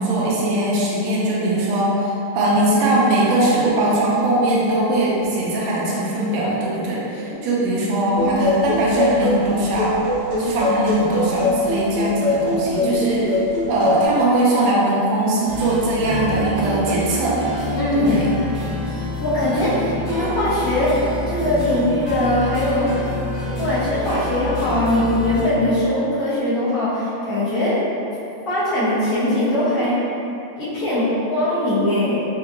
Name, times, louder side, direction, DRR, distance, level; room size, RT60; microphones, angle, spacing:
voice 1, 0.0-9.9 10.4-13.4 13.7-17.4 17.9-18.3, right 1 dB, 75° right, -6 dB, 1.8 m, -20 dB
voice 2, 7.6-7.9 17.7-18.3 19.2-23.0 23.6-27.8 28.5-30.0 30.6-32.2, left 1 dB, 85° left, -13 dB, 0.8 m, -21 dB
sound 1, 8.2-14.0, left 1 dB, 60° left, 1.5 m, -22 dB
sound 2, 15.5-25.4, left 1 dB, 40° right, 1.0 m, -27 dB
4.7 x 2.7 x 2.4 m, 2.9 s
omnidirectional pair, 3.3 m